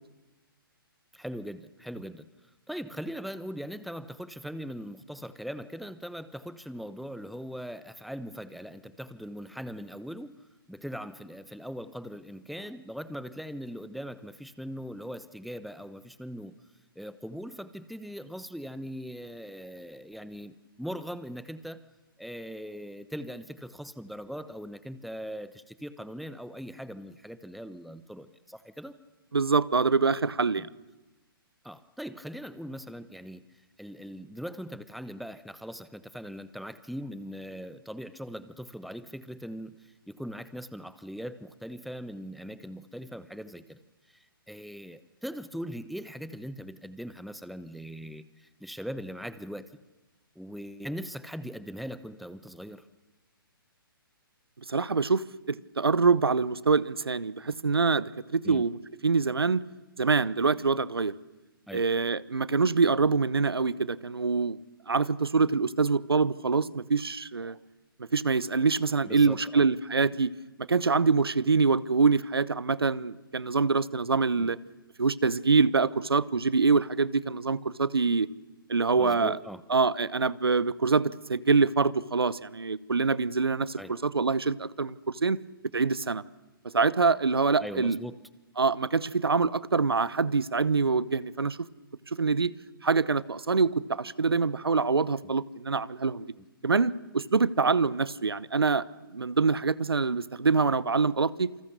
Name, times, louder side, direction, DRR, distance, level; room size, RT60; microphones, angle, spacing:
voice 1, 1.1-2.3 2.7-10.4 10.7-16.5 17.0-21.8 22.2-28.9 30.6-30.7 31.6-33.4 33.8-43.8 44.1-49.7 50.4-52.9 58.4-58.6 61.7-61.8 69.0-69.6 74.4-74.5 79.0-79.6 83.8-83.9 87.6-88.2, equal, ahead, 0.9 m, -40 dB
voice 2, 29.3-30.7 54.7-58.8 59.0-59.6 60.0-61.1 61.7-64.6 64.9-67.6 68.1-70.3 70.7-74.6 75.0-78.3 78.7-79.4 79.7-85.0 85.2-85.4 85.7-86.2 86.7-88.0 88.6-91.6 92.1-92.5 92.8-96.3 96.6-98.8 99.1-101.5, right 4 dB, 85° right, 0.9 m, -25 dB
28.0 x 26.0 x 6.7 m
figure-of-eight pair, 130°, 12 cm